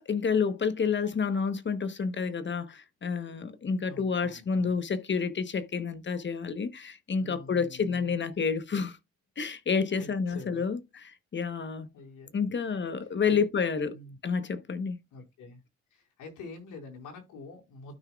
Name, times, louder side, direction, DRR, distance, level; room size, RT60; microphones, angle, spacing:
voice 1, 0.0-9.0 9.4-11.9 12.3-14.0 14.2-15.0, left 5 dB, 40° left, 1.1 m, -29 dB
voice 2, 3.8-4.8 7.2-8.1 9.9-10.7 11.9-12.3 13.3-13.4 13.9-14.1 15.1-15.6 15.9-17.9, left 3 dB, 85° left, 4.4 m, -46 dB
12.5 x 5.6 x 2.3 m
cardioid pair, 90°, 30 cm